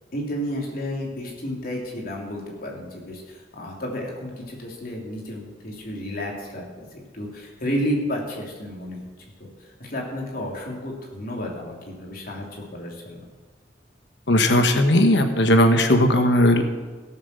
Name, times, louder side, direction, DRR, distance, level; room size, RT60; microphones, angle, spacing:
voice 1, 0.1-6.6 7.1-9.1 9.4-13.2, equal, 50° left, -1 dB, 3.2 m, -31 dB
voice 2, 14.3-16.6, left 1 dB, 65° left, 7 dB, 1.1 m, -17 dB
16.5 x 7.4 x 6.8 m, 1.4 s
head